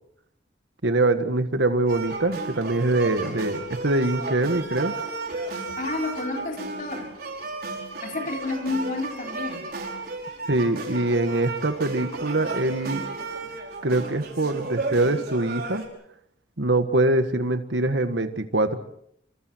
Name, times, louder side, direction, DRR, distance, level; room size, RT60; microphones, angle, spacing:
voice 1, 0.8-5.0 10.5-13.0 13.8-15.8 16.6-18.8, right 2 dB, 80° right, 8 dB, 1.8 m, -23 dB
sound 1, 1.9-15.9, right 3 dB, 60° right, 5.2 m, -34 dB
voice 2, 5.8-7.1 8.0-9.6, left 3 dB, 45° left, 2 dB, 4.0 m, -30 dB
28.5 x 26.0 x 4.6 m, 0.70 s
head